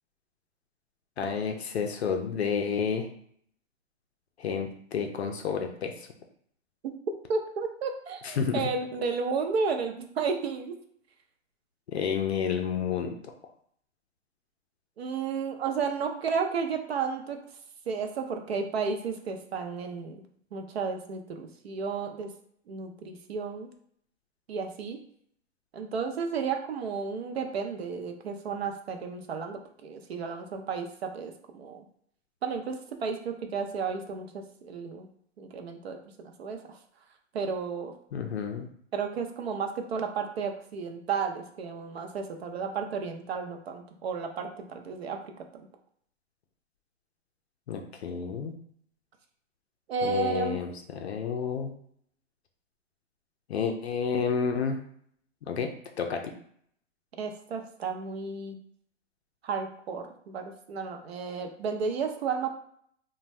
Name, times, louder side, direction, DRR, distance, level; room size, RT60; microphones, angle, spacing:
voice 1, 1.2-3.1 4.4-6.1 8.2-8.6 11.9-13.3 38.1-38.7 47.7-48.5 50.0-51.7 53.5-54.8 55.4-55.7 56.0-56.2, left 6 dB, 60° left, 4 dB, 0.5 m, -30 dB
voice 2, 7.3-10.7 15.0-17.4 17.9-20.2 20.5-22.3 22.7-23.7 24.5-25.0 25.7-31.9 32.4-35.1 35.4-36.8 37.3-37.9 38.9-45.2 49.9-50.6 57.2-58.6 59.4-62.5, right 5 dB, 55° right, 4 dB, 0.5 m, -32 dB
2.6 x 2.2 x 3.1 m, 0.64 s
hypercardioid pair, 175°, 37 cm